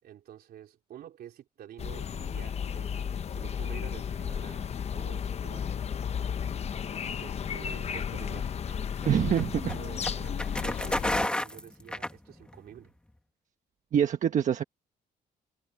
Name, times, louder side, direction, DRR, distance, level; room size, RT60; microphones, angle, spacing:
voice 1, 0.0-5.8 7.2-8.5 9.2-12.9, right 11 dB, 70° right, 3.9 m, -49 dB
sound 1, 1.8-11.3, left 7 dB, 40° left, 0.8 m, -33 dB
sound 2, 8.3-12.7, left 1 dB, 5° left, 1.9 m, -33 dB
voice 2, 9.0-9.8 13.9-14.6, right 9 dB, 50° right, 1.3 m, -25 dB
cardioid pair, 140°, 17 cm